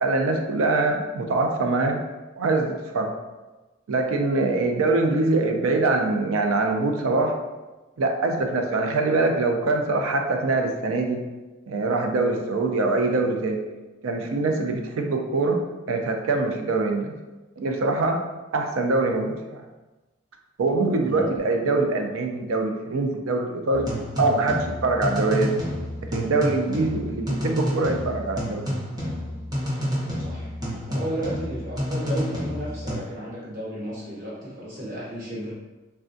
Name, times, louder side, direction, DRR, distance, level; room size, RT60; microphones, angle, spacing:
voice 1, 0.0-2.0 2.4-3.1 3.9-7.3 8.0-11.2 11.7-13.6 14.0-15.6 15.9-17.1 17.6-18.2 18.5-19.6 20.6-23.9 24.2-25.6 26.1-28.8, right 3 dB, 85° right, 3 dB, 0.4 m, -23 dB
voice 2, 21.0-21.4 30.2-30.5 30.9-35.5, equal, 45° right, -6 dB, 1.0 m, -33 dB
sound 1, 23.7-33.0, equal, 20° right, 0.6 m, -29 dB
3.4 x 2.2 x 2.6 m, 1.1 s
head